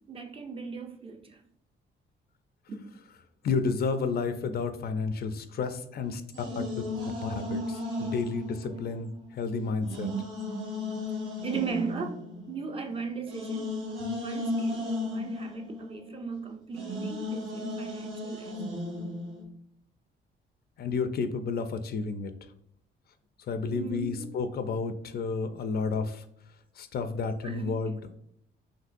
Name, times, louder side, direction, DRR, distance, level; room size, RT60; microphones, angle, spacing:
voice 1, 0.1-1.4 2.7-2.8 8.6-8.7 10.5-10.6 11.4-12.2 12.5-13.8 14.2-18.6 23.7-24.3 27.4-27.8, right 5 dB, 30° right, 0.6 m, -37 dB
voice 2, 3.4-6.2 6.6-6.7 7.2-10.1 20.8-22.3 23.5-26.2 26.8-28.1, left 4 dB, 50° left, 0.5 m, -31 dB
sound 1, 6.3-9.4 9.8-16.4 16.7-19.4, left 2 dB, 75° right, 1.7 m, -35 dB
5.4 x 3.0 x 2.5 m
cardioid pair, 125°, 20 cm